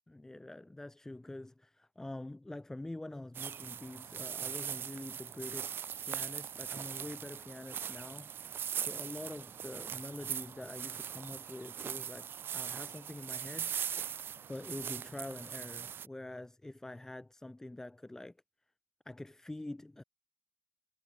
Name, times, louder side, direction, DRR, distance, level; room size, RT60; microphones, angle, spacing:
voice 1, 0.1-5.8 6.0-13.8 14.5-18.3 19.0-20.0, left 1 dB, 15° left, 2.9 m, -46 dB
sound 1, 3.3-16.1, right 8 dB, 90° right, 0.4 m, -40 dB
wide cardioid pair, 145°, 4 cm